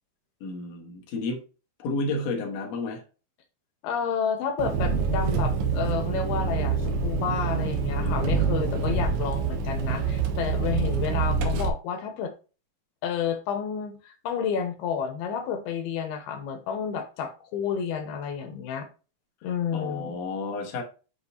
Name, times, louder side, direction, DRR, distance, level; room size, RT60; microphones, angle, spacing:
voice 1, 0.4-1.4 1.8-3.0 19.7-20.8, left 3 dB, 60° left, 0 dB, 1.8 m, -31 dB
voice 2, 3.8-12.3 13.0-18.9 19.4-20.1, left 7 dB, 80° left, 6 dB, 2.8 m, -30 dB
Engine, 4.6-11.7, right 5 dB, 90° right, 1.6 m, -26 dB
6.7 x 5.3 x 2.7 m, 0.34 s
omnidirectional pair, 4.6 m